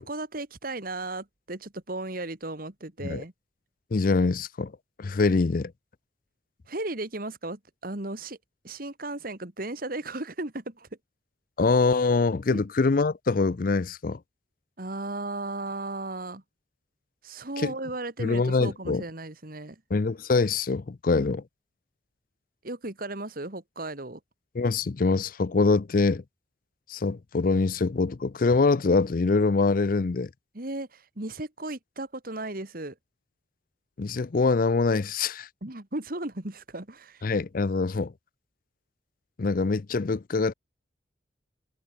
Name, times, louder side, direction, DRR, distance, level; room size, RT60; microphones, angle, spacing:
voice 1, 0.0-3.3 6.7-8.4 8.6-10.9 12.5-12.6 14.8-16.4 17.2-19.8 22.6-24.2 30.5-32.9 35.6-37.2, right 2 dB, 50° right, 2.0 m, -35 dB
voice 2, 3.9-4.7 5.0-5.7 11.6-14.2 17.6-17.7 18.2-19.0 19.9-21.4 24.5-26.2 26.9-30.3 34.0-35.5 37.2-38.1 39.4-40.5, left 3 dB, 45° left, 0.5 m, -24 dB
head